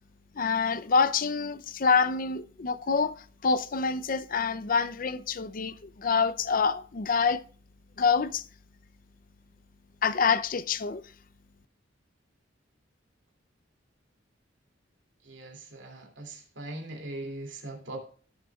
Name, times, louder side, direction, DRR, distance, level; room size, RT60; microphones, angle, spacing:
voice 1, 0.4-7.4 8.0-8.5 10.0-11.0, left 5 dB, 45° left, 0.6 m, -26 dB
voice 2, 15.3-18.0, right 2 dB, 70° right, 2.7 m, -40 dB
17.0 x 7.2 x 2.4 m
head